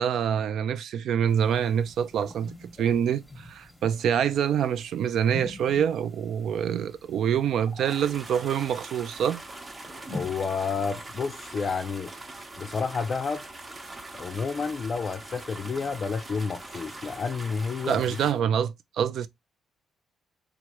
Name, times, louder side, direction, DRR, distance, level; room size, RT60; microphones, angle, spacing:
voice 1, 0.0-9.4 17.9-19.3, right 8 dB, 70° right, 0.3 m, -26 dB
sound 1, 1.3-18.4, left 1 dB, ahead, 0.9 m, -48 dB
sound 2, 7.9-18.3, right 2 dB, 25° right, 0.7 m, -42 dB
voice 2, 10.1-12.1 12.6-13.5 14.1-18.2, left 5 dB, 45° left, 0.4 m, -30 dB
3.0 x 2.4 x 2.9 m
cardioid pair, 90°, 0 cm